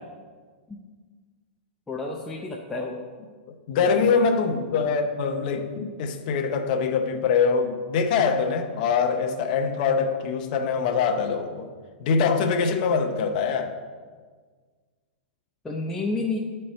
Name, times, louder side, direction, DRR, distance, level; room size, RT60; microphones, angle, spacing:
voice 1, 1.9-3.0 15.6-16.4, left 3 dB, 10° left, -2 dB, 0.6 m, -30 dB
voice 2, 3.5-11.7 12.0-13.8, left 5 dB, 50° left, 5 dB, 0.8 m, -24 dB
11.0 x 4.4 x 3.2 m, 1.5 s
hypercardioid pair, 140°, 5 cm